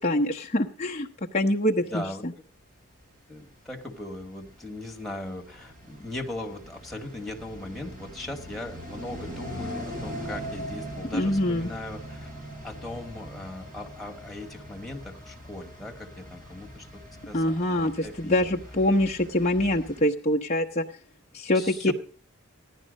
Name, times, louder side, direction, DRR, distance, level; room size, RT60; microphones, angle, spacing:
voice 1, 0.0-2.3 11.1-11.7 17.3-20.8 21.3-21.9, left 1 dB, 35° left, -1 dB, 0.9 m, -25 dB
voice 2, 1.8-2.2 3.3-12.3 12.6-18.6 21.5-21.9, left 1 dB, ahead, 1 dB, 2.1 m, -39 dB
sound 1, 3.4-20.0, equal, 45° right, 6.6 m, -41 dB
16.5 x 11.0 x 5.3 m, 0.42 s
head